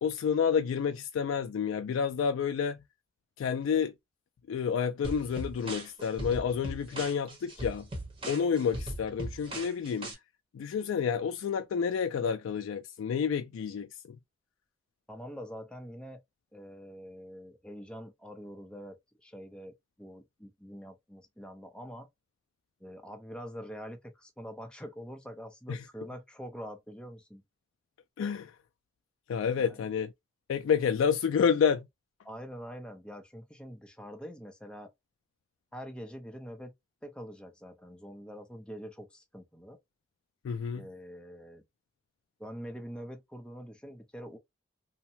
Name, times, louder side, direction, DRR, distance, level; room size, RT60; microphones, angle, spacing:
voice 1, 0.0-2.8 3.4-3.9 4.5-7.9 8.3-10.1 10.5-13.9 25.7-25.8 28.2-28.5 29.3-30.1 30.5-31.9 40.4-40.8, left 7 dB, 90° left, 0.3 m, -29 dB
sound 1, 5.0-10.1, right 1 dB, 30° right, 0.9 m, -39 dB
voice 2, 15.1-16.2 16.5-22.1 22.8-27.4 29.6-29.8 32.2-34.9 35.7-36.7 37.0-39.8 40.7-41.6 42.4-44.4, equal, 5° left, 0.5 m, -45 dB
2.7 x 2.1 x 2.7 m
head